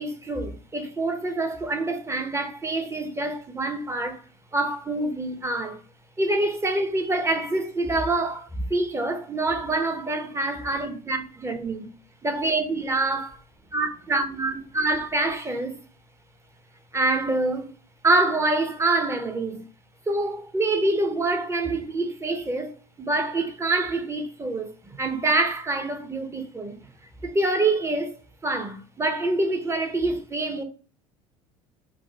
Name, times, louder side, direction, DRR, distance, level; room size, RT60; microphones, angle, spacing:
voice 1, 0.0-4.2 4.5-5.8 6.2-11.9 12.2-13.4 13.7-15.8 16.9-17.7 18.0-19.6 20.1-26.8 27.2-28.1 28.4-30.6, right 2 dB, 15° right, 1.1 m, -26 dB
5.2 x 2.4 x 3.4 m
hypercardioid pair, 70°, 17 cm